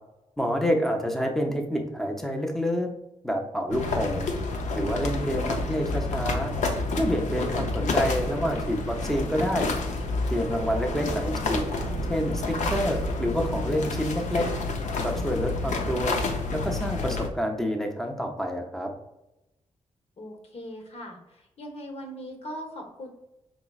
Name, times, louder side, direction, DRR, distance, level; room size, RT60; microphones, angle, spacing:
voice 1, 0.4-2.9 3.2-4.3 4.7-6.5 7.0-9.7 10.3-11.7 12.1-14.5 15.0-16.2 16.5-18.9, equal, 5° left, 2 dB, 0.7 m, -28 dB
sound 1, 3.7-17.3, left 3 dB, 75° left, 0.6 m, -29 dB
voice 2, 10.7-11.1 20.2-23.1, equal, 55° left, 1 dB, 1.0 m, -40 dB
4.9 x 3.0 x 2.3 m, 0.93 s
cardioid pair, 85°, 13 cm